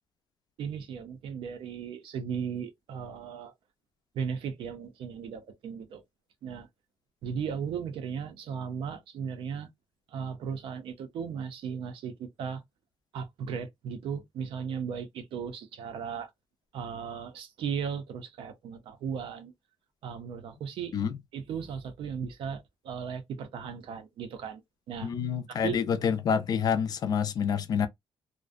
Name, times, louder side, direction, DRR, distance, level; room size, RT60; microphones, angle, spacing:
voice 1, 0.6-3.5 4.1-6.0 6.4-6.7 7.2-9.7 10.1-12.6 13.1-16.3 16.7-19.5 20.0-20.9 21.3-24.6 24.9-25.1 25.5-25.8, right 7 dB, 75° right, 0.6 m, -36 dB
voice 2, 25.0-27.9, left 7 dB, 45° left, 0.4 m, -27 dB
2.5 x 2.1 x 2.4 m
cardioid pair, 175°, 9 cm